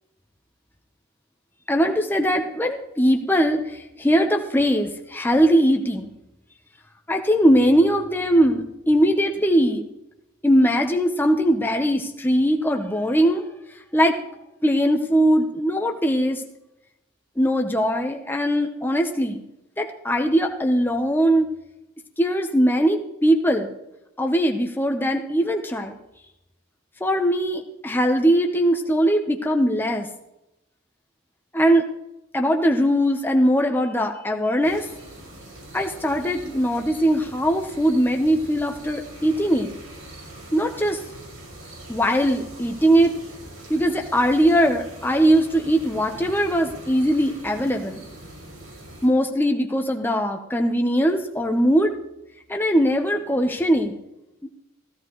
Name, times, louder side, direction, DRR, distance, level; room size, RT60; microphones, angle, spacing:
voice 1, 1.7-3.7 4.0-6.1 7.1-9.8 10.4-13.5 13.9-14.2 14.6-16.4 17.4-19.4 19.8-21.5 22.2-23.7 24.2-26.0 27.0-30.1 31.5-31.8 32.3-34.8 35.7-39.7 40.5-41.0 41.9-43.1 43.7-48.0 49.0-51.9 52.5-54.0 54.4-54.5, equal, 10° left, 3 dB, 0.9 m, -20 dB
sound 1, 34.6-49.1, right 1 dB, 80° right, 5.9 m, -42 dB
15.5 x 14.5 x 3.1 m, 0.89 s
head